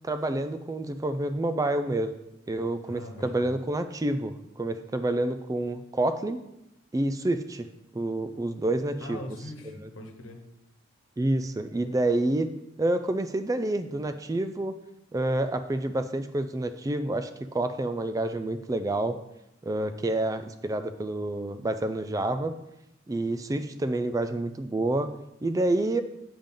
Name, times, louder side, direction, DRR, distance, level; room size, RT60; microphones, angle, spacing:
voice 1, 0.0-2.1 2.5-6.4 6.9-7.7 7.9-9.2 11.2-12.5 12.8-14.7 15.1-19.2 19.6-22.5 23.1-25.1 25.4-26.0, right 2 dB, 15° right, 10 dB, 0.3 m, -28 dB
voice 2, 2.8-3.6 9.0-10.4, left 1 dB, 85° left, 4 dB, 1.2 m, -41 dB
8.7 x 5.2 x 3.8 m, 0.86 s
head